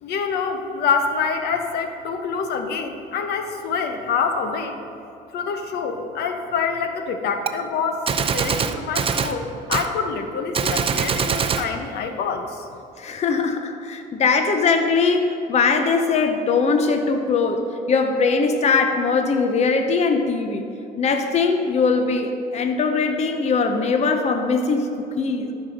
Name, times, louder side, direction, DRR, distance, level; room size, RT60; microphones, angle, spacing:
voice 1, 0.0-4.8 5.3-8.0 8.3-12.6, left 5 dB, 75° left, 6 dB, 0.9 m, -26 dB
Gunshot gunfire, 7.5-7.6 8.1-9.4 9.7-9.9 10.5-11.7, right 6 dB, 35° right, 0.6 m, -23 dB
voice 2, 13.0-20.6 21.0-25.5, left 4 dB, 40° left, 5 dB, 0.7 m, -21 dB
13.0 x 5.4 x 5.2 m, 2.8 s
cardioid pair, 110°, 17 cm